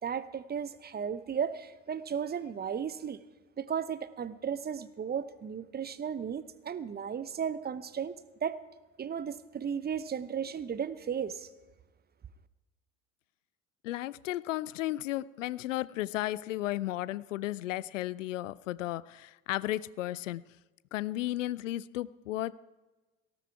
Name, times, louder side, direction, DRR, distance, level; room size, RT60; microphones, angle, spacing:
voice 1, 0.0-3.2 3.6-8.1 8.4-8.6 9.0-11.5, right 7 dB, 25° right, 14 dB, 0.9 m, -35 dB
voice 2, 13.8-20.4 20.9-22.5, left 15 dB, 75° left, 20 dB, 0.5 m, -34 dB
18.5 x 13.5 x 4.7 m, 1.2 s
figure-of-eight pair, 60°, 38 cm